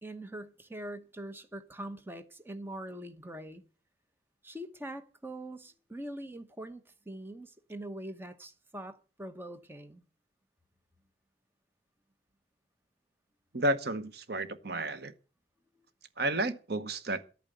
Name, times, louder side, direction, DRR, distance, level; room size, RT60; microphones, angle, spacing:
voice 1, 0.0-3.6 4.4-10.0, right 1 dB, 10° right, 0.9 m, -43 dB
voice 2, 13.5-15.1 16.2-17.2, right 1 dB, 60° right, 1.0 m, -31 dB
12.0 x 8.8 x 7.9 m
head